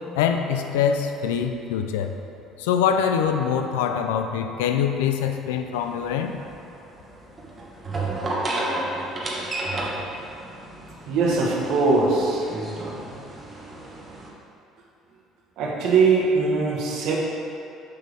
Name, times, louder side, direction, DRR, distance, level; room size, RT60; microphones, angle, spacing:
voice 1, 0.2-2.1 2.6-6.3, left 7 dB, 90° left, 6 dB, 0.4 m, -24 dB
sound 1, 5.7-14.3, right 2 dB, 30° right, 1.3 m, -32 dB
voice 2, 11.1-12.5 15.6-17.2, right 4 dB, 70° right, -3 dB, 1.3 m, -21 dB
6.7 x 6.2 x 3.5 m, 2.7 s
supercardioid pair, 75°, 0 cm